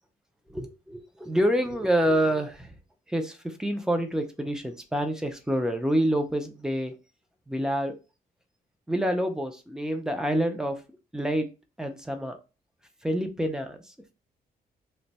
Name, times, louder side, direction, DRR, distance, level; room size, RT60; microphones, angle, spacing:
voice 1, 0.5-2.8 3.1-6.9 7.5-7.9 8.9-10.8 11.1-11.5 11.8-12.4 13.0-14.1, equal, 5° right, 6 dB, 0.3 m, -27 dB
2.6 x 2.1 x 3.9 m, 0.31 s
wide cardioid pair, 180°, 16 cm